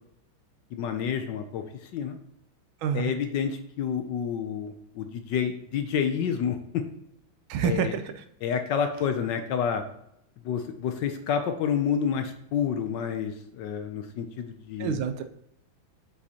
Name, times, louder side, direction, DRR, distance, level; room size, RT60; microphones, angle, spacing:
voice 1, 0.7-1.7 1.9-2.2 2.9-6.8 7.6-7.9 8.4-9.8 10.4-15.0, left 7 dB, 70° left, 7 dB, 1.1 m, -29 dB
voice 2, 2.8-3.1 7.5-8.2 14.8-15.2, right 7 dB, 85° right, 8 dB, 1.4 m, -28 dB
8.0 x 5.0 x 2.8 m, 0.76 s
omnidirectional pair, 2.2 m